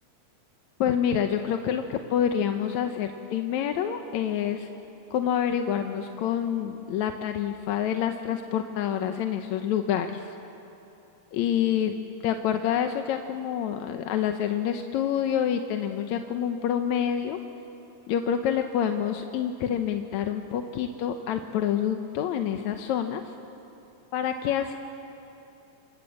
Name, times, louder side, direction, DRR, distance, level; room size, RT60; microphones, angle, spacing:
voice 1, 0.8-4.7 5.1-10.3 11.3-12.0 12.2-17.4 18.1-23.3 24.1-24.8, left 9 dB, 75° left, 6 dB, 2.2 m, -27 dB
27.5 x 27.0 x 7.6 m, 2.9 s
omnidirectional pair, 3.4 m